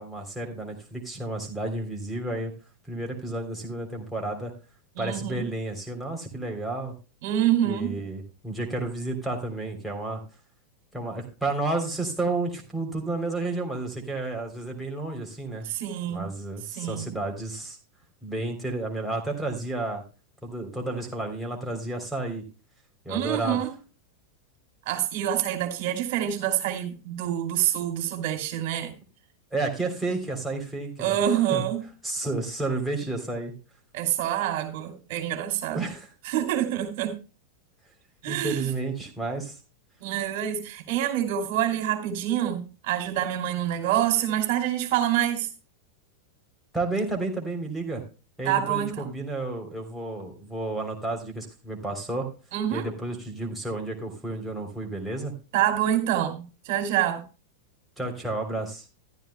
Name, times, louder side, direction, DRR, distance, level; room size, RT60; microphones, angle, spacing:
voice 1, 0.0-2.5 2.9-4.5 5.0-6.9 7.7-10.2 10.9-15.7 16.1-17.8 18.2-20.0 20.4-22.4 23.1-23.6 29.5-31.2 31.5-31.7 32.0-33.5 35.7-36.1 38.3-39.6 46.7-48.0 48.4-52.3 52.7-55.3 58.0-58.8, right 2 dB, ahead, 0 dB, 3.3 m, -31 dB
voice 2, 5.0-5.5 7.2-8.0 15.6-16.3 16.8-17.1 23.1-23.7 24.9-28.9 31.0-31.9 33.9-35.9 36.2-37.1 38.2-38.7 40.0-45.5 48.4-49.1 52.5-52.9 55.5-57.2, right 11 dB, 50° right, 5 dB, 2.6 m, -26 dB
14.0 x 12.0 x 2.2 m, 0.33 s
figure-of-eight pair, 90°, 0 cm